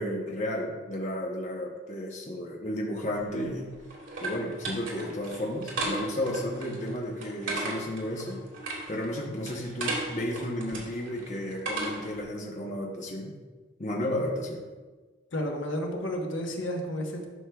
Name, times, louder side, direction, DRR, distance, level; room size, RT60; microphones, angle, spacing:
voice 1, 0.0-3.7 4.2-8.4 8.9-13.3 13.8-14.7, left 1 dB, 40° left, -1 dB, 0.8 m, -33 dB
sound 1, 3.2-12.2, right 2 dB, 85° right, 2.0 m, -36 dB
voice 2, 15.3-17.3, equal, 70° left, 1 dB, 1.1 m, -31 dB
11.0 x 6.2 x 2.3 m, 1.3 s
head